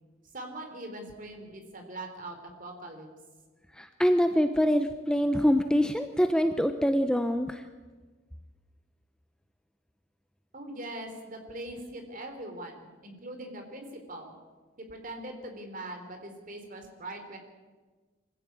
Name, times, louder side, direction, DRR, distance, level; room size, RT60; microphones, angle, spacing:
voice 1, 0.3-3.1 10.5-14.3 14.8-17.4, right 1 dB, 40° right, 4 dB, 3.6 m, -41 dB
voice 2, 3.8-7.6, equal, 5° left, 8 dB, 0.7 m, -25 dB
23.5 x 15.5 x 8.8 m, 1.3 s
head